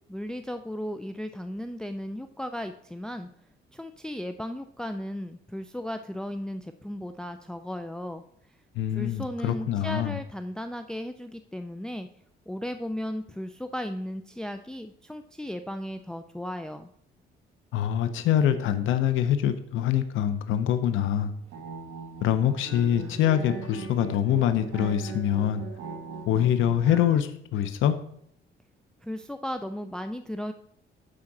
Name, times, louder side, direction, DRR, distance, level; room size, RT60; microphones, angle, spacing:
voice 1, 0.1-3.3 3.7-8.2 8.9-12.1 12.5-16.9 29.0-30.5, left 1 dB, 5° left, 8 dB, 0.4 m, -35 dB
voice 2, 8.8-10.2 17.7-21.3 22.2-25.6 26.3-28.0, left 10 dB, 85° left, 10 dB, 0.7 m, -24 dB
sound 1, 21.4-27.2, right 5 dB, 85° right, 1.7 m, -40 dB
9.8 x 3.8 x 6.0 m, 0.68 s
cardioid pair, 90°, 20 cm